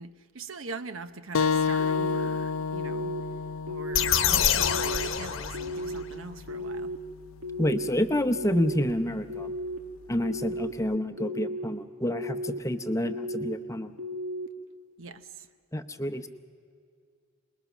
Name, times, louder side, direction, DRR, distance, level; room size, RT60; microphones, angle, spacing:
voice 1, 0.0-3.1 3.7-6.9 15.0-15.5, right 3 dB, 70° right, 11 dB, 0.9 m, -42 dB
sound 1, 1.3-6.5, left 5 dB, 80° left, 0.5 m, -31 dB
sound 2, 1.8-2.3 2.7-3.2 3.7-4.1 4.6-5.1 5.5-6.0 6.5-7.0 7.4-7.9 8.3-8.8 9.3-9.8 10.2-10.7 11.2-11.6 12.1-12.6 13.0-13.5 14.0-14.5, equal, 85° right, 2.1 m, -34 dB
sound 3, 3.9-6.1, left 9 dB, 65° left, 1.0 m, -26 dB
voice 2, 7.6-9.5 10.1-13.9 15.7-16.3, equal, 15° left, 8 dB, 0.8 m, -28 dB
26.0 x 21.0 x 6.1 m, 2.2 s
head